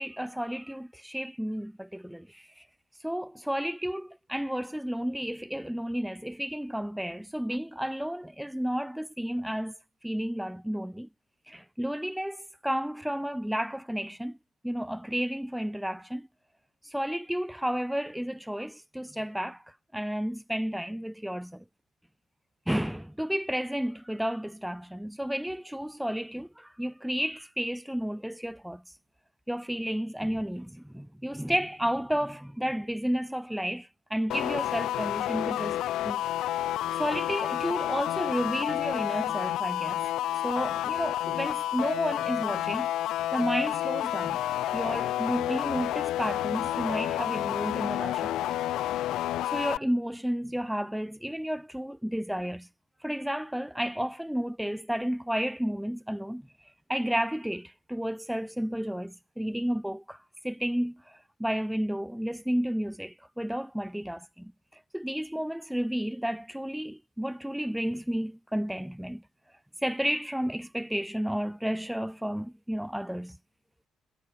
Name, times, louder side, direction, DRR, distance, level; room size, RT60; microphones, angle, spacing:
voice 1, 0.0-2.6 3.0-9.8 10.0-11.1 11.5-14.4 14.6-16.3 16.8-19.6 19.9-21.6 22.7-28.8 29.5-36.2 37.0-40.0 40.4-42.9 43.3-44.4 44.7-48.6 49.5-52.7 53.0-56.4 56.9-60.2 60.4-69.2 69.8-73.4, equal, 5° right, 5.1 m, -32 dB
sound 1, 34.3-49.8, left 13 dB, 85° left, 4.2 m, -30 dB
cardioid pair, 90°, 0 cm